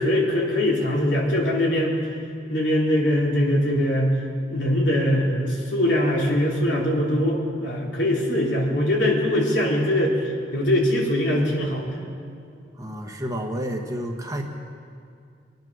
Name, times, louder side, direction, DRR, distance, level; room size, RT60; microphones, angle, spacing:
voice 1, 0.0-2.0 2.5-4.1 4.5-10.2 10.5-12.0, left 1 dB, 70° left, -3 dB, 3.3 m, -22 dB
voice 2, 12.8-14.4, equal, 20° right, 2 dB, 1.1 m, -30 dB
24.0 x 9.3 x 6.2 m, 2.3 s
head